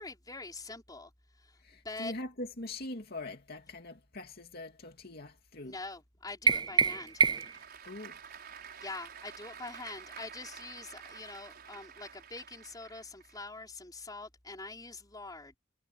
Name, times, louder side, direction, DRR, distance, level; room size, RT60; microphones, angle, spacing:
voice 1, 0.0-2.1 5.6-7.2 8.8-15.6, left 3 dB, 20° left, 4.9 m, -44 dB
voice 2, 1.6-5.7 7.8-8.2, left 2 dB, 55° left, 2.4 m, -42 dB
sound 1, 6.5-7.7, right 5 dB, 20° right, 0.4 m, -26 dB
Applause / Crowd, 6.6-13.4, right 7 dB, 55° right, 5.6 m, -50 dB
head